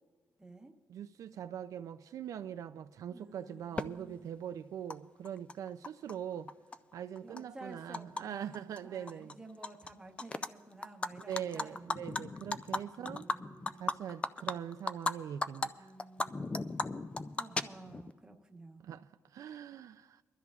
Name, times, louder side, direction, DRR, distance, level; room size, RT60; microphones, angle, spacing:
voice 1, 0.4-0.7 3.1-4.2 7.2-11.9 12.9-14.5 15.7-16.5 17.4-18.8, right 2 dB, 10° right, 0.9 m, -53 dB
voice 2, 0.9-6.5 6.9-9.3 11.2-13.3 13.8-15.9 18.8-20.2, right 9 dB, 65° right, 0.3 m, -42 dB
Animal, 3.8-3.9 4.9-5.0 5.2-6.1 6.5-8.2 8.5-8.8 9.1-9.9 10.2-10.5 10.8-15.1 15.4-15.7 16.0-18.1, left 3 dB, 20° left, 0.3 m, -36 dB
24.5 x 13.0 x 2.4 m
wide cardioid pair, 155°, 6 cm